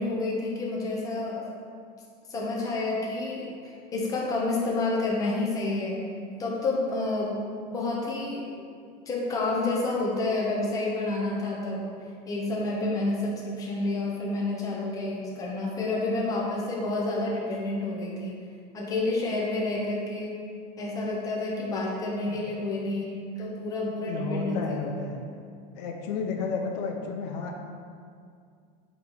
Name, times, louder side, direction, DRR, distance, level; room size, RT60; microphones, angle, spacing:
voice 1, 0.0-1.5 2.3-6.0 6.4-7.4 7.7-8.5 9.1-11.9 12.3-18.4 18.7-20.3 20.8-23.1 23.4-24.6, left 2 dB, 15° left, -3 dB, 0.9 m, -29 dB
voice 2, 23.9-25.2 25.7-27.6, left 4 dB, 80° left, 2 dB, 0.9 m, -32 dB
7.7 x 3.2 x 5.5 m, 2.2 s
cardioid pair, 175°, 21 cm